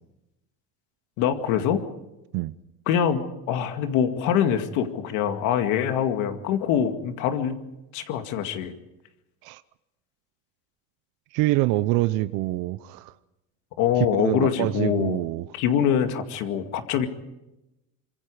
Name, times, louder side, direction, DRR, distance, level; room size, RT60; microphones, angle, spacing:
voice 1, 1.2-1.8 2.9-7.6 7.9-8.7 13.8-15.2 15.5-17.1, left 9 dB, 75° left, 2.2 m, -24 dB
voice 2, 11.3-13.1 14.2-15.5, right 18 dB, 75° right, 0.8 m, -25 dB
25.0 x 23.0 x 5.0 m
cardioid pair, 145°, 31 cm